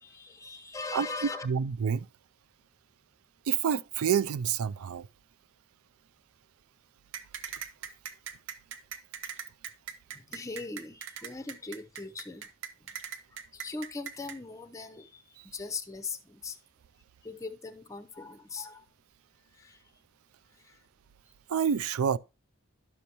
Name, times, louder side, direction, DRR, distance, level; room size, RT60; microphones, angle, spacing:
voice 1, 0.0-1.5 10.1-12.5 13.5-15.2 15.5-16.6 17.2-18.8 19.6-19.8 20.6-20.8, left 3 dB, 15° left, 0.6 m, -40 dB
voice 2, 1.4-2.1 3.5-5.1 21.5-22.2, right 7 dB, 85° right, 0.4 m, -28 dB
sound 1, 7.1-14.4, right 8 dB, 60° right, 0.7 m, -40 dB
11.0 x 6.8 x 2.9 m
head